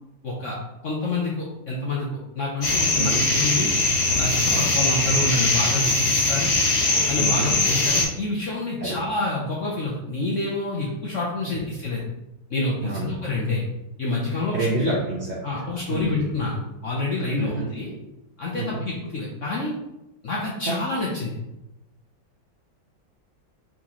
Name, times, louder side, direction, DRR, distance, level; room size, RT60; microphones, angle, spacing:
voice 1, 0.2-0.6 0.8-2.1 2.4-3.7 4.2-6.5 7.1-12.0 12.5-13.6 14.0-14.9 15.4-17.9 18.4-19.7 20.2-21.4, left 2 dB, 75° left, -4 dB, 0.7 m, -27 dB
sound 1, 2.6-8.0, left 2 dB, 45° left, 1.2 m, -21 dB
voice 2, 3.0-3.3 4.4-4.7 7.1-7.6 8.8-9.0 11.5-11.6 12.8-13.1 14.5-15.2 15.9-16.2 17.4-17.7 18.5-18.9 20.6-20.8, right 2 dB, 65° right, -5 dB, 0.6 m, -28 dB
4.3 x 3.7 x 2.9 m, 0.93 s
omnidirectional pair, 2.1 m